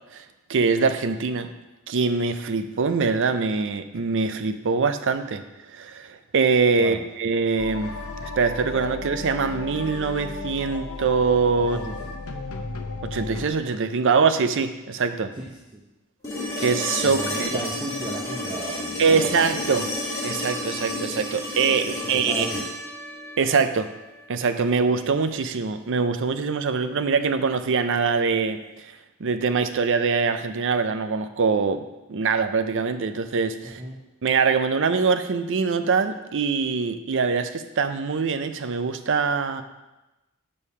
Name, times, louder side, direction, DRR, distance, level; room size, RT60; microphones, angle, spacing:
voice 1, 0.5-1.5 1.9-5.4 5.7-11.8 13.1-15.3 16.6-17.5 19.0-19.9 20.2-22.5 23.4-23.9 24.3-28.9 29.2-33.8 34.2-39.6, right 5 dB, 60° right, 9 dB, 0.5 m, -23 dB
sound 1, 7.6-13.5, left 3 dB, 85° left, 0.8 m, -34 dB
voice 2, 11.6-12.0 15.3-15.5 15.7-15.8 17.0-19.4 21.8-21.9 22.3-22.6 33.6-34.0, right 1 dB, 20° right, -2 dB, 0.7 m, -35 dB
sound 2, 16.2-24.3 26.4-26.5, left 1 dB, 15° left, 2.3 m, -31 dB
6.4 x 5.4 x 5.5 m, 1.0 s
head